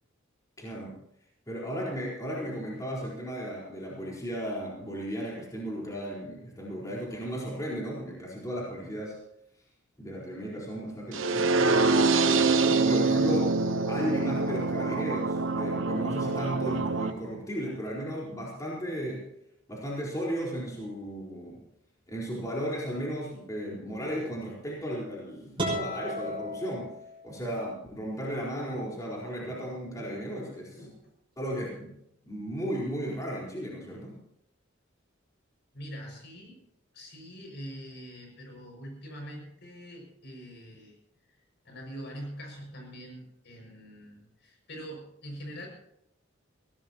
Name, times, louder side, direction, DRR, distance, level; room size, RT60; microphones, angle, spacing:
voice 1, 0.6-1.0 1.5-9.2 10.0-11.8 12.1-12.6 12.8-13.5 13.9-19.2 19.7-21.6 22.1-26.9 27.2-30.8 31.4-31.9 32.2-34.2, equal, 15° left, -5 dB, 4.2 m, -35 dB
sound 1, 11.1-17.1, right 3 dB, 75° right, 1.0 m, -25 dB
sound 2, 25.6-27.5, equal, 25° right, 5.8 m, -34 dB
voice 2, 29.5-30.3 30.7-31.0 35.7-36.6 36.9-41.0 41.6-45.7, equal, 60° left, 1 dB, 6.2 m, -44 dB
22.5 x 17.0 x 2.9 m, 0.76 s
head